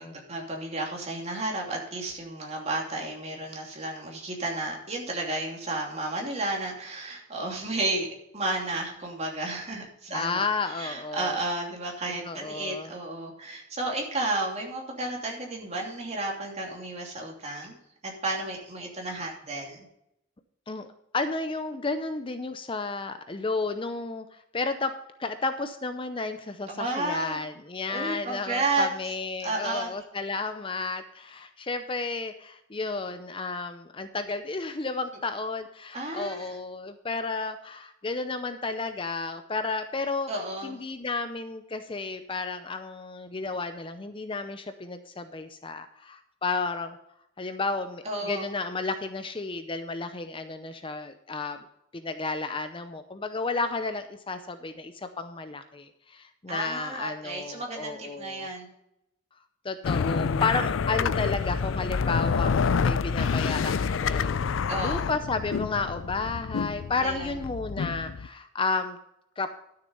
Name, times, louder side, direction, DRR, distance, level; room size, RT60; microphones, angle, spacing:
voice 1, 0.0-8.1 8.3-17.8 18.0-19.9 26.7-27.4 27.9-28.9 29.4-29.9 35.9-36.5 40.3-40.8 48.0-48.5 56.5-58.7 64.7-65.1 67.0-67.3, right 2 dB, 35° right, 0 dB, 2.8 m, -32 dB
voice 2, 10.1-11.4 12.2-12.9 20.7-20.9 21.1-24.9 25.2-40.3 40.6-47.0 47.4-51.6 51.9-58.5 59.6-64.4 64.8-69.0 69.4-69.5, left 3 dB, 25° left, 9 dB, 0.6 m, -32 dB
sound 1, 59.8-68.3, left 5 dB, 85° left, 0.4 m, -28 dB
12.5 x 6.7 x 5.4 m, 0.80 s
head